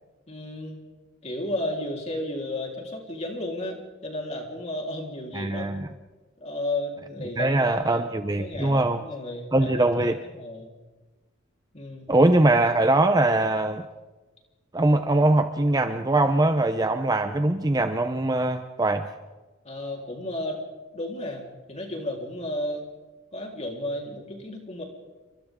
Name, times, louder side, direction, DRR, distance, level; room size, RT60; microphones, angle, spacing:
voice 1, 0.3-0.8 1.2-5.7 6.4-8.0 8.4-10.7 11.7-12.1 19.6-20.6 20.9-22.8 23.3-24.8, left 1 dB, 30° left, 0 dB, 4.0 m, -33 dB
voice 2, 5.3-5.9 7.4-9.0 9.5-10.2 12.1-13.9 14.7-19.1, right 2 dB, 20° right, 8 dB, 0.7 m, -22 dB
29.0 x 25.0 x 3.7 m, 1.2 s
head